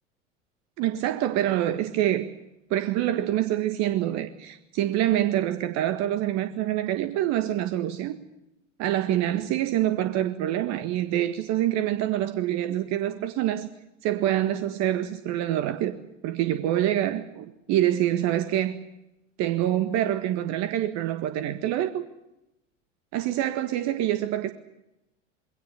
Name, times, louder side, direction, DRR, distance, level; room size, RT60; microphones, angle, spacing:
voice 1, 0.8-2.3 2.7-8.2 8.8-13.7 14.0-16.0 16.2-18.8 19.4-22.0 23.1-24.5, right 12 dB, 45° right, 1.7 m, -26 dB
22.5 x 18.0 x 9.6 m
figure-of-eight pair, 80°, 38 cm